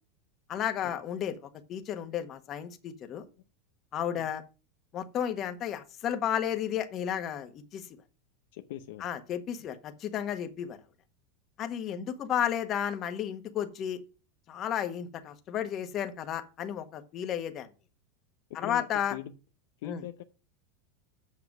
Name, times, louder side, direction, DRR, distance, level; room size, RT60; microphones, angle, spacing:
voice 1, 0.5-1.3 1.7-3.2 3.9-4.4 4.9-7.9 9.0-10.8 11.6-14.0 14.5-17.7 18.5-19.2 19.8-20.0, left 9 dB, 40° left, 7 dB, 1.4 m, -33 dB
voice 2, 8.5-9.1 11.9-12.0 18.6-19.3 19.8-20.2, left 13 dB, 75° left, 8 dB, 0.7 m, -41 dB
7.7 x 5.8 x 6.0 m, 0.33 s
supercardioid pair, 115°, 0 cm